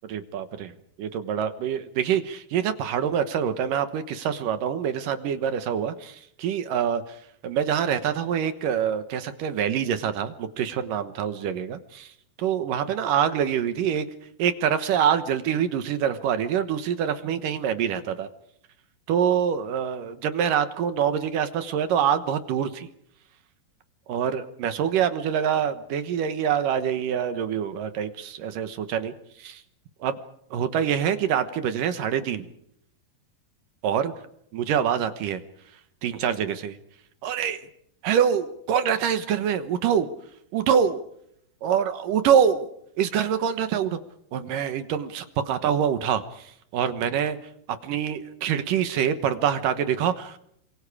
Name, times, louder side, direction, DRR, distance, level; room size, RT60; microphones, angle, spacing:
voice 1, 0.1-0.7 1.0-7.2 7.4-12.1 12.4-14.1 14.4-18.3 19.1-22.9 24.1-29.1 29.4-29.6 30.0-30.1 30.5-32.5 33.8-34.1 34.5-35.4 36.0-36.8 37.2-37.6 38.0-40.1 40.5-41.0 41.6-42.7 43.0-44.0 44.3-47.4 47.8-50.4, right 8 dB, 70° right, 10 dB, 2.7 m, -25 dB
28.5 x 26.0 x 4.9 m, 0.72 s
omnidirectional pair, 4.3 m